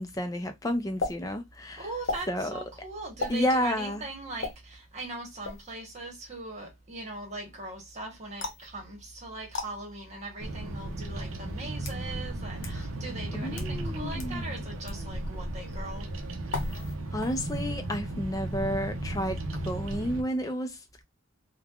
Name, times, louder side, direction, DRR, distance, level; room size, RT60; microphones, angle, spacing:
voice 1, 0.0-1.8 2.3-2.5 3.3-4.0 12.7-12.9 13.3-14.5 17.1-19.4 19.6-21.0, equal, 15° left, 0.5 m, -31 dB
sound 1, 1.0-1.1 2.0-2.3 3.2-3.4 4.4-4.5 5.4-5.7 8.4-8.7 9.5-9.7 10.6-10.7 11.6-12.0 12.6-12.7 13.4-13.7 14.2-14.3 14.8-15.0 16.5-16.9 17.2-17.6, left 2 dB, 60° left, 0.9 m, -34 dB
voice 2, 1.8-16.1, right 2 dB, 35° right, 1.2 m, -40 dB
Bird vocalization bird call bird song, 10.4-20.2, right 1 dB, 80° right, 0.6 m, -35 dB
3.1 x 2.2 x 2.3 m
head